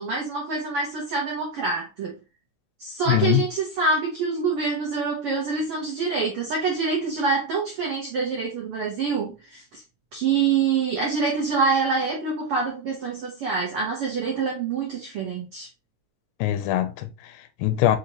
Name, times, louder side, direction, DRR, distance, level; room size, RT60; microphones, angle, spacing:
voice 1, 0.0-2.1 2.8-9.8 10.1-15.7, right 4 dB, 80° right, 1.2 m, -26 dB
voice 2, 3.1-3.5 16.4-18.0, left 13 dB, 90° left, 2.4 m, -23 dB
5.9 x 2.9 x 2.8 m
omnidirectional pair, 3.9 m